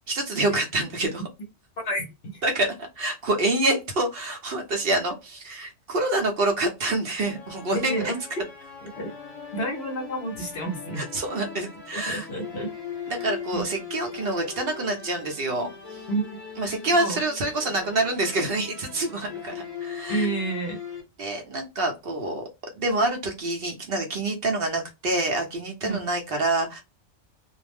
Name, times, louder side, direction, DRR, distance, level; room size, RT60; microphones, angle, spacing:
voice 1, 0.1-1.2 2.4-7.9 11.0-12.3 13.1-16.0 16.6-20.3 21.2-22.4 22.8-26.8, right 2 dB, 55° right, 0.8 m, -27 dB
sound 1, 7.2-21.0, left 7 dB, 30° left, 1.1 m, -40 dB
voice 2, 7.7-8.2 8.8-9.1 9.5-11.1 11.9-12.7 13.5-13.6 16.1-16.4 17.0-17.2 20.1-20.8 25.8-26.0, right 2 dB, 60° left, 0.9 m, -29 dB
2.4 x 2.0 x 3.3 m
omnidirectional pair, 1.3 m